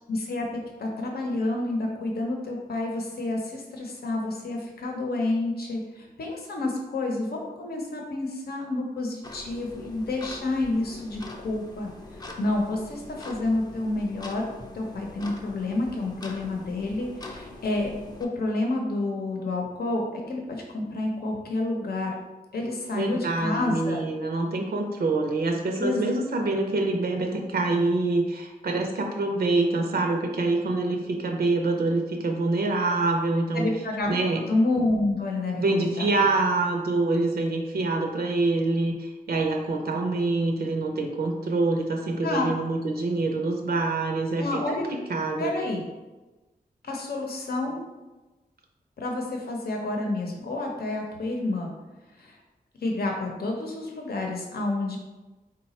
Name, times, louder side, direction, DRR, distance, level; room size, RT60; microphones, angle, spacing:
voice 1, 0.1-14.5 14.7-17.9 18.2-22.2 22.5-24.0 25.8-26.1 33.5-34.1 34.4-36.3 42.2-42.5 44.4-45.0 45.4-45.8 46.8-47.8 49.0-51.7 52.2-52.4 52.8-55.0, left 2 dB, 80° left, 1 dB, 0.7 m, -29 dB
sound 1, 9.2-18.3, left 2 dB, 25° left, 0.5 m, -43 dB
voice 2, 22.9-33.7 34.1-34.4 35.6-44.6 44.9-45.5, right 2 dB, 80° right, 2 dB, 0.6 m, -26 dB
4.0 x 2.2 x 4.1 m, 1.1 s
wide cardioid pair, 100°, 16 cm